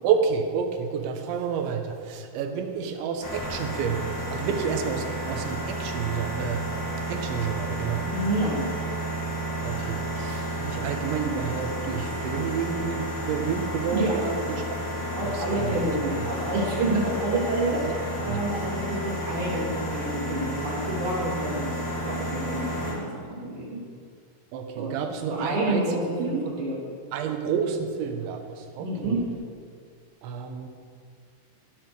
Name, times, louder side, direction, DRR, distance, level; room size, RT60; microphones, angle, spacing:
voice 1, 0.0-6.6 7.1-8.1 9.6-14.8 15.2-15.8 17.8-18.4 24.5-25.8 26.2-26.4 27.1-29.3 30.2-30.7, right 7 dB, 80° right, 5 dB, 3.4 m, -30 dB
sound 1, 3.2-22.9, equal, 30° left, 2.8 m, -32 dB
voice 2, 8.0-8.7 13.9-14.2 15.2-21.7 22.0-23.8 24.8-24.9 25.3-26.8 28.8-29.2, right 1 dB, 30° right, -5 dB, 3.5 m, -28 dB
16.0 x 8.7 x 6.4 m, 2.1 s
omnidirectional pair, 5.4 m